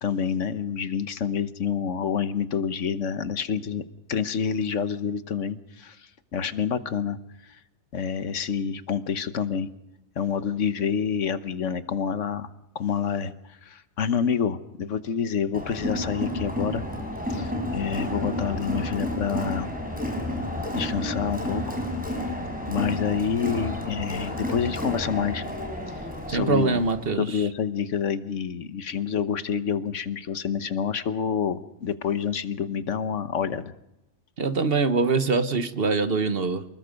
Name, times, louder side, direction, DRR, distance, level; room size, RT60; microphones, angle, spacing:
voice 1, 0.0-3.8 4.1-7.2 7.9-9.7 10.2-12.5 12.7-16.8 17.3-19.7 20.7-21.8 22.7-25.4 26.3-26.8 27.2-33.7, left 7 dB, 80° left, 12 dB, 1.4 m, -28 dB
Crowd, 15.5-27.1, left 1 dB, 5° right, 5.0 m, -31 dB
voice 2, 26.3-27.5 34.4-36.7, right 4 dB, 55° right, 11 dB, 1.3 m, -24 dB
28.5 x 20.5 x 5.2 m, 0.90 s
omnidirectional pair, 1.2 m